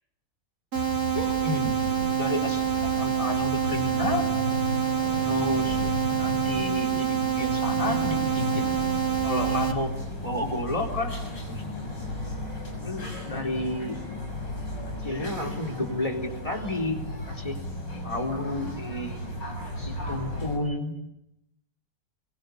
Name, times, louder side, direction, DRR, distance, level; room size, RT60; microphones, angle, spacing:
sound 1, 0.7-20.6, left 1 dB, 80° left, 7.0 m, -34 dB
sound 2, 0.7-9.7, right 9 dB, 65° right, 2.6 m, -27 dB
voice 1, 1.1-1.8 2.1-4.2 5.2-5.8 6.2-8.7 9.2-9.9 10.2-11.1 11.5-11.6 12.7-14.0 15.0-17.0 17.3-17.6 18.0-19.2 19.8-20.9, left 1 dB, 20° left, 2 dB, 3.8 m, -31 dB
27.0 x 24.0 x 8.3 m, 0.85 s
omnidirectional pair, 1.9 m